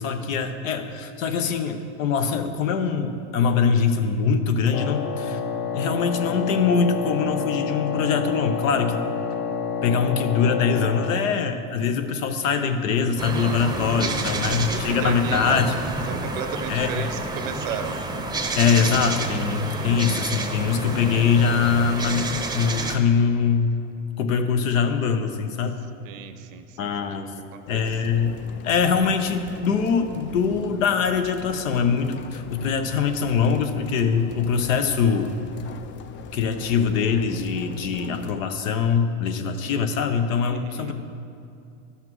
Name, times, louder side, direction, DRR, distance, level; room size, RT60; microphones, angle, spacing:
voice 1, 0.0-5.4 5.7-9.0 9.8-15.7 16.7-17.1 18.6-23.7 24.2-25.8 26.8-27.3 27.7-28.4 28.6-35.3 36.3-40.9, left 6 dB, 90° left, 7 dB, 0.8 m, -23 dB
Wind instrument woodwind instrument, 4.7-11.4, left 6 dB, 60° left, 1.1 m, -28 dB
sound 1, 13.2-23.0, right 2 dB, 10° right, 0.6 m, -29 dB
voice 2, 14.5-15.8 16.1-18.0 26.0-27.1 27.5-28.0 40.4-40.9, right 8 dB, 80° right, 9 dB, 0.8 m, -35 dB
sound 2, 27.7-38.4, left 7 dB, 30° left, 0.4 m, -41 dB
12.5 x 5.8 x 3.0 m, 2.5 s
supercardioid pair, 100°, 38 cm